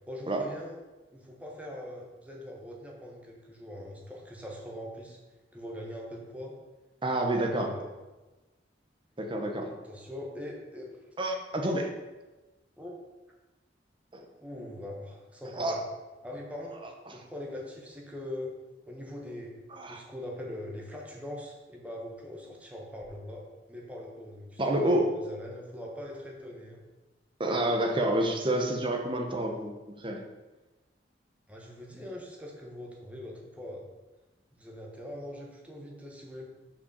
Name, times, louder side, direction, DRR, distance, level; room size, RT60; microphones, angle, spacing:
voice 1, 0.1-0.7 1.1-5.2 5.5-6.6 7.3-7.9 9.5-10.9 12.8-13.0 14.4-15.8 16.2-16.8 17.1-18.5 18.8-19.6 19.9-26.8 31.5-33.9 34.5-36.5, left 1 dB, 10° right, -2 dB, 1.2 m, -42 dB
voice 2, 7.0-7.7 9.2-9.6 11.2-11.9 14.1-14.3 15.4-15.8 17.1-17.2 19.7-20.0 24.6-25.1 27.4-30.2, right 1 dB, 30° right, 3 dB, 1.0 m, -28 dB
5.8 x 5.1 x 6.7 m, 1.1 s
head